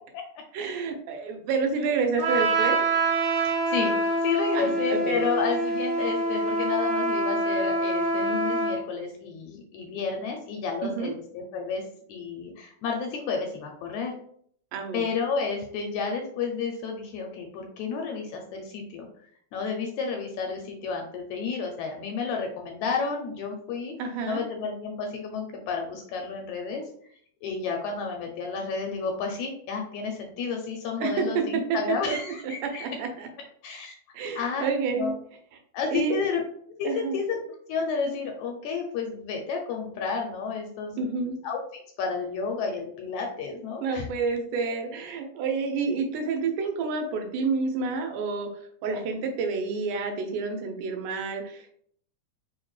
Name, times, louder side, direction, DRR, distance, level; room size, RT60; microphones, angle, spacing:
voice 1, 0.5-2.8 4.5-5.2 10.8-11.1 14.7-15.1 24.0-24.5 31.0-32.2 32.6-33.3 34.1-35.2 35.9-36.2 36.8-37.2 41.0-41.4 43.8-51.8, right 4 dB, 85° right, 4 dB, 2.2 m, -29 dB
Trumpet, 2.2-8.8, right 2 dB, 60° right, 1.5 m, -25 dB
voice 2, 3.3-4.0 4.2-11.8 12.1-14.2 14.9-19.1 19.5-23.9 24.2-26.8 27.4-32.9 33.6-33.9 34.4-34.7 35.0-35.1 35.7-36.4 36.8-37.4 37.7-44.1, left 5 dB, 80° left, 2 dB, 1.7 m, -31 dB
4.9 x 2.2 x 3.1 m, 0.62 s
omnidirectional pair, 3.6 m